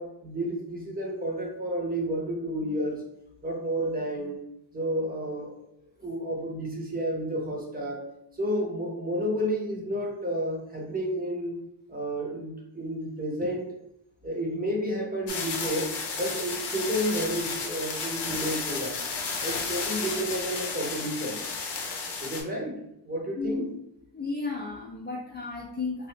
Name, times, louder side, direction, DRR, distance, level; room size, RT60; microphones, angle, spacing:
voice 1, 0.0-3.0 3.4-4.4 4.7-5.6 6.0-8.0 8.3-11.6 11.9-13.7 14.2-19.0 19.4-21.4 22.2-23.7, equal, 20° right, -1 dB, 0.8 m, -31 dB
sound 1, 15.3-22.4, left 4 dB, 70° left, 0.8 m, -33 dB
voice 2, 23.4-23.7 24.1-26.1, left 3 dB, 25° left, -3 dB, 0.5 m, -33 dB
2.9 x 2.3 x 3.3 m, 0.79 s
cardioid pair, 120°, 43 cm